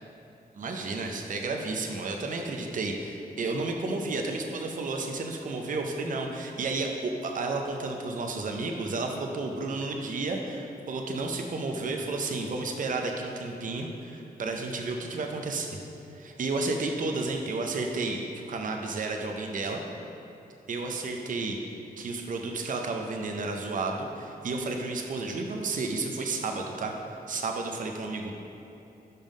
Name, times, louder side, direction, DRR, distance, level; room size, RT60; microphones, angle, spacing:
voice 1, 0.5-15.8 16.1-19.8 20.7-21.6 22.0-26.9 27.3-28.3, right 3 dB, 55° right, 2 dB, 0.5 m, -32 dB
5.4 x 5.4 x 5.1 m, 2.9 s
wide cardioid pair, 120°, 16 cm